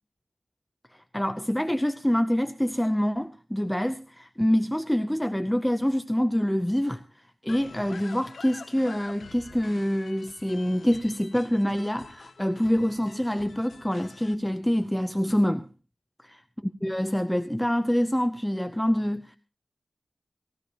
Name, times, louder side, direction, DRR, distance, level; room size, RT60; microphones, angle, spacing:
voice 1, 0.9-7.0 7.4-15.6 16.8-19.4, equal, 5° left, 0.6 m, -26 dB
sound 1, 7.5-14.3, left 4 dB, 75° left, 1.2 m, -47 dB
20.0 x 16.0 x 2.9 m
wide cardioid pair, 85°, 0 cm